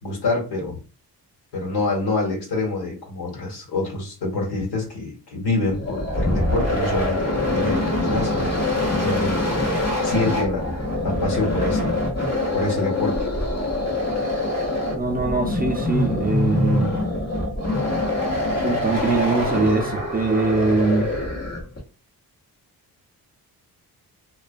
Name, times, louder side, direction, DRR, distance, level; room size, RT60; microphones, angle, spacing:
voice 1, 0.0-0.8 1.5-9.5 10.0-10.6 11.0-11.9 12.5-13.2, left 2 dB, 80° left, 1.4 m, -26 dB
sound 1, 5.7-21.8, left 1 dB, 40° left, 0.9 m, -24 dB
voice 2, 14.9-17.0 18.6-21.1, right 3 dB, 25° right, 0.4 m, -22 dB
2.3 x 2.2 x 2.5 m
cardioid pair, 95°, 39 cm